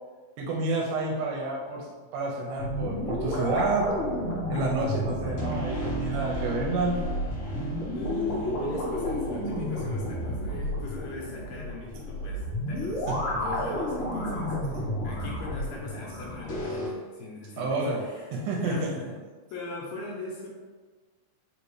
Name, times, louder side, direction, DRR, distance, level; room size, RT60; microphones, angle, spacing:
voice 1, 0.4-1.9 2.1-3.9 4.5-7.0 17.6-18.9, right 3 dB, 85° right, -2 dB, 2.2 m, -29 dB
sound 1, 2.6-16.9, equal, 55° left, 1.8 m, -31 dB
voice 2, 7.9-19.1 19.5-20.5, left 3 dB, 75° left, -3 dB, 1.7 m, -41 dB
5.1 x 2.8 x 3.2 m, 1.4 s
omnidirectional pair, 3.7 m